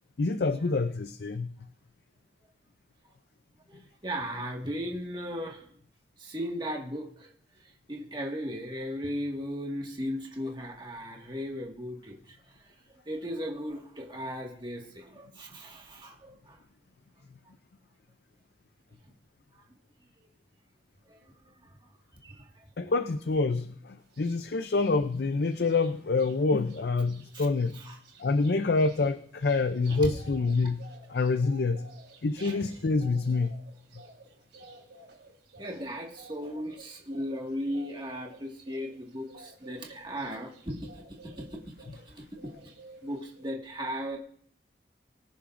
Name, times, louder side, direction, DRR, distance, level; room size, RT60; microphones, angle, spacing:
voice 1, 0.2-1.7 22.8-27.8 28.2-31.9 32.2-33.6, left 3 dB, 60° left, 9 dB, 0.5 m, -27 dB
voice 2, 3.7-5.7 6.2-7.3 7.9-16.6 19.5-19.6 21.1-21.8 22.2-22.6 27.3-27.5 27.8-28.0 29.9-30.1 32.4-32.6 35.6-41.7 42.1-42.5 43.0-44.2, equal, 25° right, 0 dB, 1.8 m, -37 dB
sound 1, 24.1-24.4 24.7-26.3 26.6-26.8 27.0-42.1 42.3-43.5, right 2 dB, 75° right, 3.9 m, -53 dB
22.5 x 10.0 x 2.6 m, 0.62 s
head